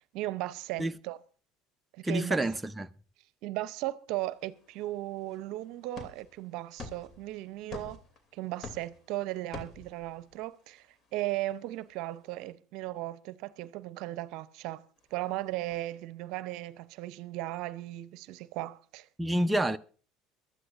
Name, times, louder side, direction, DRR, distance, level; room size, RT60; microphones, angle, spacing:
voice 1, 0.1-1.2 1.9-2.4 3.4-8.0 8.3-10.9 11.1-14.8 15.1-19.1, right 16 dB, 65° right, 0.7 m, -36 dB
voice 2, 2.0-2.9 19.2-19.8, right 1 dB, 10° right, 0.6 m, -28 dB
sound 1, 4.2-12.5 15.0-15.7, left 3 dB, 40° left, 2.8 m, -50 dB
23.0 x 13.0 x 2.5 m
hypercardioid pair, 80°, 0 cm